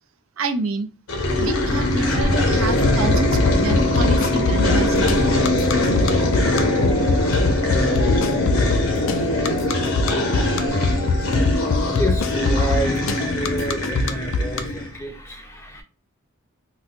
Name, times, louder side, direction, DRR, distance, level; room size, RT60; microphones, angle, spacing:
voice 1, 0.4-0.9 1.4-5.2, right 4 dB, 70° right, 6 dB, 0.5 m, -28 dB
sound 1, 1.1-15.0, left 1 dB, 75° left, 0.8 m, -21 dB
sound 2, 2.1-13.3, left 3 dB, 30° right, 0.6 m, -35 dB
sound 3, 2.8-14.6, left 3 dB, 60° left, 0.4 m, -22 dB
voice 2, 11.5-15.8, equal, 10° left, 3 dB, 0.6 m, -29 dB
4.0 x 2.2 x 2.4 m, 0.31 s
head